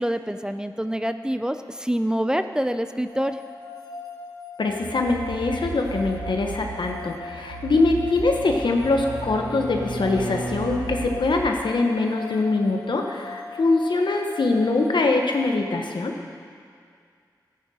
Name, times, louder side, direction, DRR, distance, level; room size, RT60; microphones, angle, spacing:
voice 1, 0.0-3.4, equal, 10° right, 9 dB, 0.5 m, -26 dB
sound 1, 3.1-15.6, left 4 dB, 55° left, 1.7 m, -40 dB
voice 2, 4.6-16.1, left 3 dB, 85° left, 2 dB, 1.1 m, -23 dB
sound 2, 4.7-11.5, right 5 dB, 90° right, 0.7 m, -37 dB
Bowed string instrument, 7.5-10.9, right 1 dB, 65° right, 3.4 m, -35 dB
14.0 x 10.0 x 4.3 m, 2.2 s
cardioid pair, 45°, 8 cm